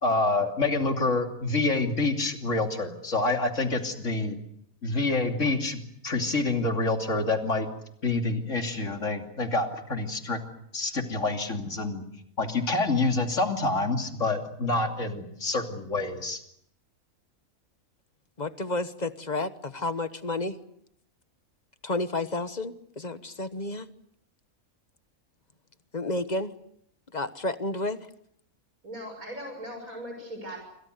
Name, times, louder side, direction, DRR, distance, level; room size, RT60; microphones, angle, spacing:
voice 1, 0.0-4.4 4.8-7.7 8.0-10.4 10.7-12.0 12.4-16.4, left 3 dB, 65° left, 4 dB, 3.2 m, -27 dB
voice 2, 18.4-20.6 21.8-23.9 25.9-26.5 27.1-28.0, left 2 dB, 35° left, 11 dB, 1.2 m, -31 dB
voice 3, 28.8-30.6, equal, 85° right, 3 dB, 6.9 m, -39 dB
28.5 x 25.0 x 6.6 m, 0.73 s
omnidirectional pair, 1.4 m